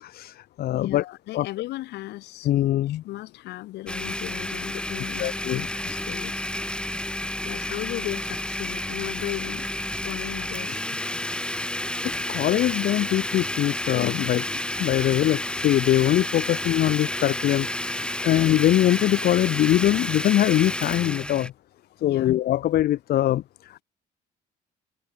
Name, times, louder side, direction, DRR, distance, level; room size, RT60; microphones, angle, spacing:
voice 1, 0.0-1.0 1.3-1.5 2.4-3.0 5.2-5.7 12.3-14.4 14.8-21.5 22.0-23.8, left 13 dB, 65° left, 1.4 m, -22 dB
voice 2, 0.7-2.5 2.9-6.5 7.4-9.7 10.0-10.8 14.4-14.8 22.0-22.3, left 17 dB, 80° left, 8.0 m, -36 dB
Domestic sounds home sounds, 3.9-21.5, left 1 dB, 5° left, 1.9 m, -30 dB
cardioid pair, 110°, 17 cm